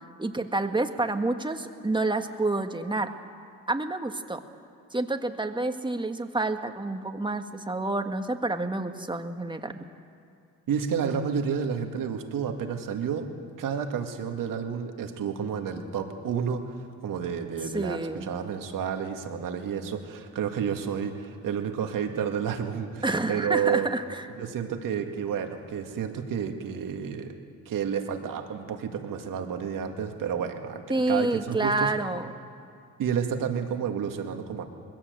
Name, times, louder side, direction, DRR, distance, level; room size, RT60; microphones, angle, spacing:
voice 1, 0.2-3.1 3.7-4.4 4.9-9.8 17.7-18.3 23.0-24.2 30.9-32.3, right 2 dB, 15° right, 7 dB, 1.6 m, -28 dB
voice 2, 10.7-13.3 13.6-16.8 17.0-23.9 24.4-27.4 27.7-31.9 33.0-34.6, right 7 dB, 75° right, 5 dB, 2.1 m, -30 dB
21.0 x 16.0 x 8.1 m, 2.5 s
supercardioid pair, 65°, 34 cm